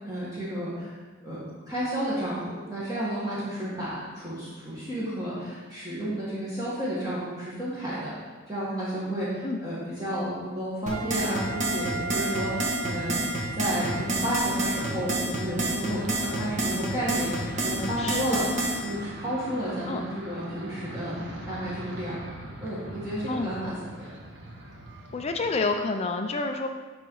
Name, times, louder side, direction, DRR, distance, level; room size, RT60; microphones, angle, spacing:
voice 1, 0.0-0.9 1.2-1.4 1.7-8.1 8.5-13.2 13.5-18.4 18.8-21.1 21.5-22.2 22.6-24.1, right 1 dB, 20° right, -9 dB, 1.8 m, -31 dB
sound 1, 10.9-18.8, right 2 dB, 35° right, 1.6 m, -28 dB
Wind instrument woodwind instrument, 10.9-15.2, right 5 dB, 90° right, 0.5 m, -37 dB
sound 2, 13.6-25.7, right 1 dB, 60° right, 1.3 m, -41 dB
voice 2, 18.0-18.6 19.9-20.0 23.3-23.5 25.1-26.7, left 3 dB, 30° left, 5 dB, 0.4 m, -29 dB
12.0 x 4.0 x 4.7 m, 1.4 s
head